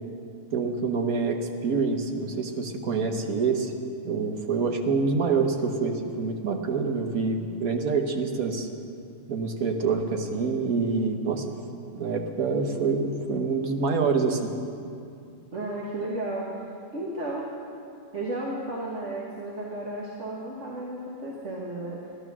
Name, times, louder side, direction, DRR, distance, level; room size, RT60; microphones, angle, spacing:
voice 1, 0.5-3.7 4.0-8.7 9.3-11.5 11.9-14.5, right 4 dB, 80° right, 4 dB, 1.6 m, -26 dB
voice 2, 15.5-16.5 16.9-17.5 18.1-22.0, right 1 dB, 55° right, -4 dB, 1.7 m, -33 dB
15.0 x 11.5 x 6.1 m, 2.5 s
omnidirectional pair, 1.5 m